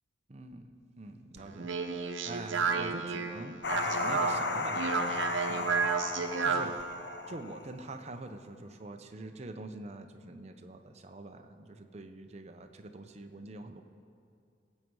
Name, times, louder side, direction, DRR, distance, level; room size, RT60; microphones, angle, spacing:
voice 1, 0.3-3.6 3.8-5.9 6.4-6.8 7.3-13.8, right 2 dB, 35° right, 6 dB, 0.7 m, -45 dB
Speech, 1.4-6.8, right 5 dB, 80° right, 0.9 m, -32 dB
sound 1, 3.6-7.9, left 4 dB, 60° left, 0.7 m, -35 dB
17.0 x 7.5 x 4.7 m, 2.5 s
head